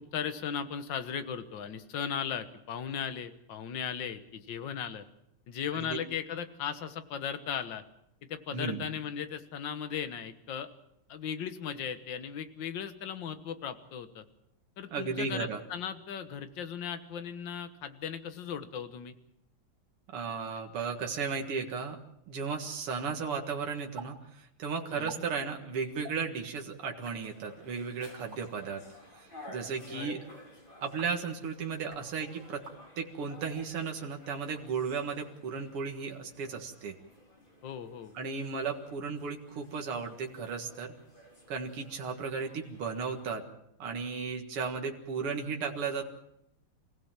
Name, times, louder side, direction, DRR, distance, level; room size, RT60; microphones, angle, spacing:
voice 1, 0.0-5.0 5.5-7.8 8.3-10.7 11.1-14.2 14.8-19.1 24.9-25.2 29.9-30.1 37.6-38.1, left 8 dB, 60° left, 10 dB, 1.9 m, -37 dB
voice 2, 8.5-8.8 14.9-15.6 20.1-22.0 22.3-28.8 29.1-30.2 30.8-32.6 33.0-36.9 38.1-40.9 41.5-43.4 43.8-46.0, right 5 dB, 85° right, 3 dB, 2.7 m, -35 dB
sound 1, 24.0-24.1 24.4-24.5 24.9-25.2 26.0-26.2 26.9-27.2 28.1-28.4 29.4-29.7 30.8-31.2 31.7-32.1 32.6-32.8 33.5-33.7 34.4-35.1, right 5 dB, 55° right, 3.8 m, -49 dB
sound 2, 27.0-43.3, left 1 dB, 20° left, 4.1 m, -54 dB
27.0 x 16.5 x 7.4 m, 0.81 s
omnidirectional pair, 2.4 m